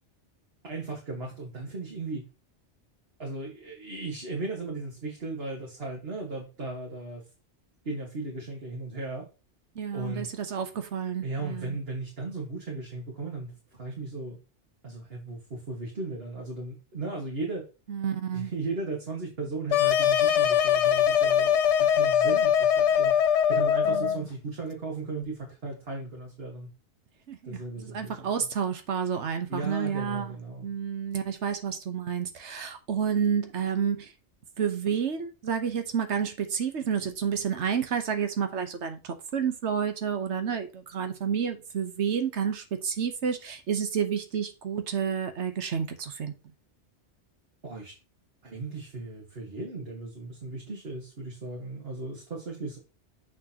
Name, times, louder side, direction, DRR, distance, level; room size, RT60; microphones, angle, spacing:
voice 1, 0.6-2.2 3.2-7.2 7.8-9.3 9.9-10.3 11.2-13.5 13.8-14.4 14.8-17.6 18.3-23.1 23.5-26.7 27.4-28.3 29.5-30.7 47.6-47.9 48.4-52.8, right 3 dB, 60° right, 2.1 m, -36 dB
voice 2, 9.8-11.8 17.9-18.5 23.9-24.3 27.3-30.3 30.6-34.1 34.6-46.3, right 7 dB, 80° right, 1.2 m, -30 dB
sound 1, 19.7-24.2, left 9 dB, 80° left, 1.0 m, -22 dB
7.3 x 6.2 x 2.9 m
omnidirectional pair, 1.2 m